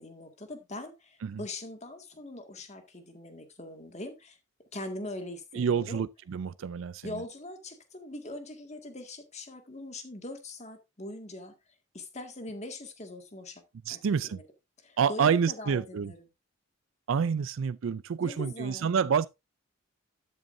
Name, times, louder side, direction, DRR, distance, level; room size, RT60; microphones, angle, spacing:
voice 1, 0.0-4.4 4.7-6.1 7.0-11.5 11.9-13.6 13.9-14.4 14.8-16.2 18.2-19.0, left 1 dB, 35° left, 2.0 m, -42 dB
voice 2, 5.5-7.2 13.9-14.4 15.0-16.1 17.1-19.3, right 6 dB, 75° right, 0.4 m, -28 dB
12.5 x 8.0 x 2.6 m
head